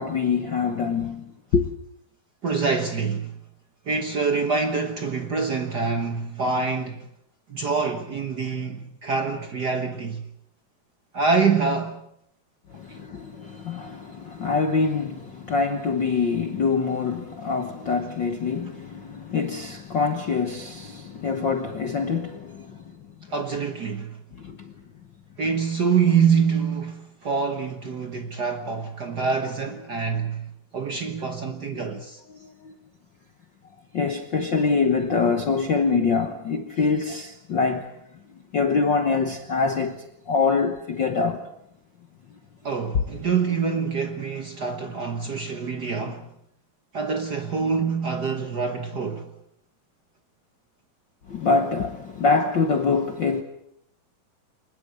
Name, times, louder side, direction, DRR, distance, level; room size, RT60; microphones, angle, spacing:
voice 1, 0.0-1.7 12.7-22.8 24.4-24.7 31.7-31.8 32.3-32.7 33.9-37.9 38.5-41.5 51.3-53.4, left 4 dB, 65° left, 1.1 m, -25 dB
voice 2, 2.4-3.3 3.9-7.1 7.5-10.2 11.1-12.0 23.3-24.2 25.4-32.2 42.6-46.3 46.9-49.3, right 5 dB, 70° right, 0.9 m, -25 dB
24.0 x 20.5 x 7.8 m
omnidirectional pair, 4.0 m